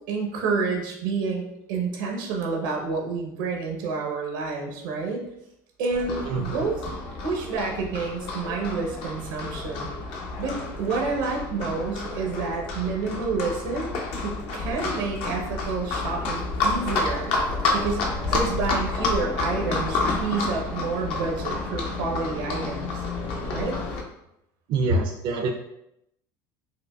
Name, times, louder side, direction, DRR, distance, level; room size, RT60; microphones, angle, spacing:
voice 1, 0.1-1.4 1.7-5.2 5.8-6.8 7.2-9.9 10.4-14.0 14.2-17.3 17.7-23.0 23.5-23.8, right 4 dB, 90° right, 1 dB, 0.8 m, -29 dB
Livestock farm animals working animals, 5.9-24.0, left 3 dB, 65° left, 0.7 m, -29 dB
voice 2, 6.3-6.6 24.7-25.5, right 5 dB, 50° right, 1 dB, 0.4 m, -27 dB
4.9 x 2.2 x 2.3 m, 0.82 s
supercardioid pair, 100°, 10 cm